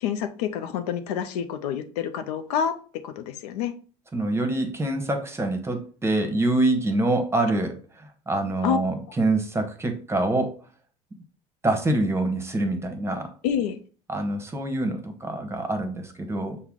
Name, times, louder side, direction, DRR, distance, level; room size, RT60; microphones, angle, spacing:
voice 1, 0.0-2.8 3.0-3.7 8.6-8.8 13.4-13.8, left 8 dB, 75° left, 9 dB, 0.5 m, -27 dB
voice 2, 4.1-10.6 11.6-13.3 14.1-16.6, right 2 dB, 15° right, 5 dB, 1.0 m, -25 dB
5.7 x 2.2 x 3.6 m, 0.40 s
hypercardioid pair, 75°, 20 cm